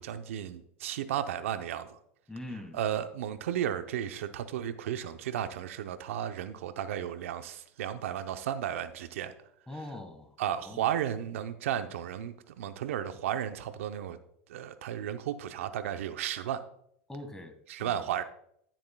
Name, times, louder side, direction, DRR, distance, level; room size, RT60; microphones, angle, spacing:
voice 1, 0.0-2.0 2.7-9.3 10.4-14.2 14.5-16.6 17.7-18.2, right 10 dB, 80° right, 10 dB, 0.7 m, -34 dB
voice 2, 2.3-2.8 9.7-10.4 10.6-10.9 17.1-17.5 17.8-18.1, left 1 dB, 10° left, 6 dB, 1.5 m, -42 dB
12.5 x 7.4 x 2.3 m, 0.70 s
hypercardioid pair, 110°, 7 cm